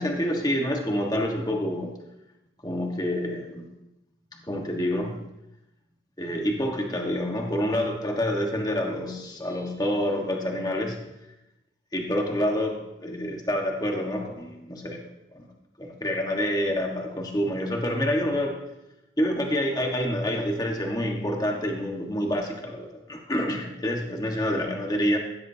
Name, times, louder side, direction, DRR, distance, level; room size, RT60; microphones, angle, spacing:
voice 1, 0.0-1.9 2.6-3.6 4.5-5.2 6.2-11.0 11.9-15.0 15.3-15.4 15.8-18.6 19.2-25.2, equal, 20° left, 1 dB, 1.4 m, -27 dB
16.0 x 12.0 x 2.8 m, 0.91 s
head